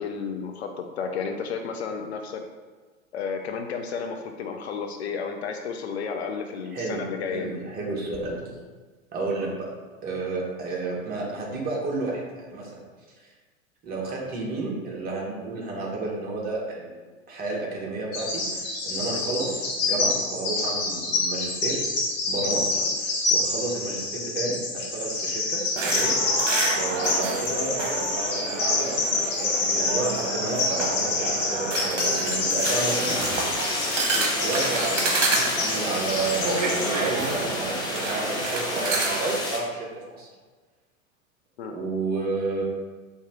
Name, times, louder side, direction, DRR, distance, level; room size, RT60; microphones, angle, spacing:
voice 1, 0.0-2.4 3.1-7.5 19.1-19.3 22.8-23.0 34.1-34.3 41.6-41.7, left 5 dB, 55° left, 4 dB, 0.4 m, -32 dB
voice 2, 7.3-8.5 9.1-9.7 10.0-12.8 13.2-13.3 13.8-21.8 22.3-26.1 26.8-29.0 29.4-33.3 34.4-39.9 40.2-40.3 41.7-42.6, right 3 dB, 20° right, -2 dB, 1.0 m, -31 dB
Bird vocalization bird call bird song, 18.1-36.9, left 3 dB, 35° left, 1.5 m, -27 dB
sound 1, 25.8-39.3, right 3 dB, 65° right, 0.9 m, -29 dB
sound 2, 32.6-39.6, left 2 dB, 10° left, 0.6 m, -30 dB
4.5 x 2.7 x 3.5 m, 1.4 s
figure-of-eight pair, 90°, 40 cm